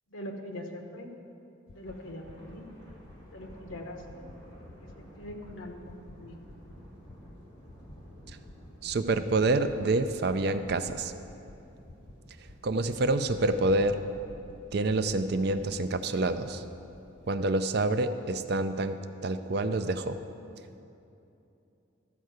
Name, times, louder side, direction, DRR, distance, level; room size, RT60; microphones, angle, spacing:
voice 1, 0.1-1.1 1.7-2.7 3.3-4.2 5.2-5.8 6.1-6.3, left 1 dB, 85° left, 3 dB, 1.1 m, -42 dB
sound 1, 1.7-1.9 2.3-2.5 2.9-3.1 3.5-3.7 4.1-4.3 4.7-4.9 5.3-5.5 5.9-6.1 6.5-6.7 7.1-7.3 7.7-7.9 8.3-8.5 8.9-9.2 9.5-9.7 10.1-10.3 10.7-10.9 11.3-11.5 11.9-12.1 12.5-12.7 13.1-13.3 13.7-13.9 14.3-14.5 14.9-15.1 15.5-15.6, left 2 dB, 45° left, 0.5 m, -50 dB
Thunder, 1.7-18.3, equal, 20° left, 2.2 m, -52 dB
voice 2, 8.8-11.1 12.6-14.0 14.7-16.6 17.2-20.2, right 2 dB, 50° right, 9 dB, 0.4 m, -27 dB
12.5 x 4.6 x 7.9 m, 2.8 s
head